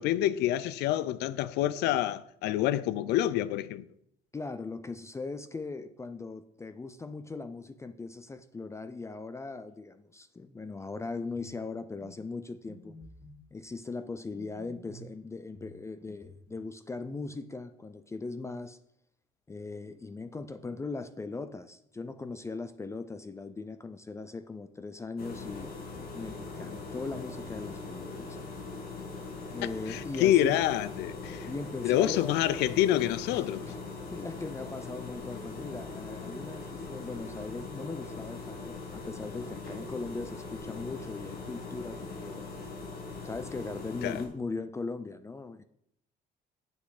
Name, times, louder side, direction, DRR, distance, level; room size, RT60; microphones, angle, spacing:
voice 1, 0.0-3.8 29.9-31.5 31.8-33.7 44.0-44.2, left 13 dB, 85° left, 0.5 m, -27 dB
voice 2, 4.3-12.9 13.5-18.8 19.5-25.7 26.1-28.4 29.5-30.6 31.4-32.5 33.3-33.8 34.1-42.5 43.2-45.6, left 3 dB, 15° left, 0.5 m, -39 dB
sound 1, 11.3-11.6 12.0-12.2 12.7-13.4 14.3-15.1 15.5-16.5, equal, 10° right, 2.2 m, -51 dB
sound 2, 25.2-44.3, left 3 dB, 65° left, 2.5 m, -41 dB
7.8 x 6.8 x 4.9 m
cardioid pair, 110°, 17 cm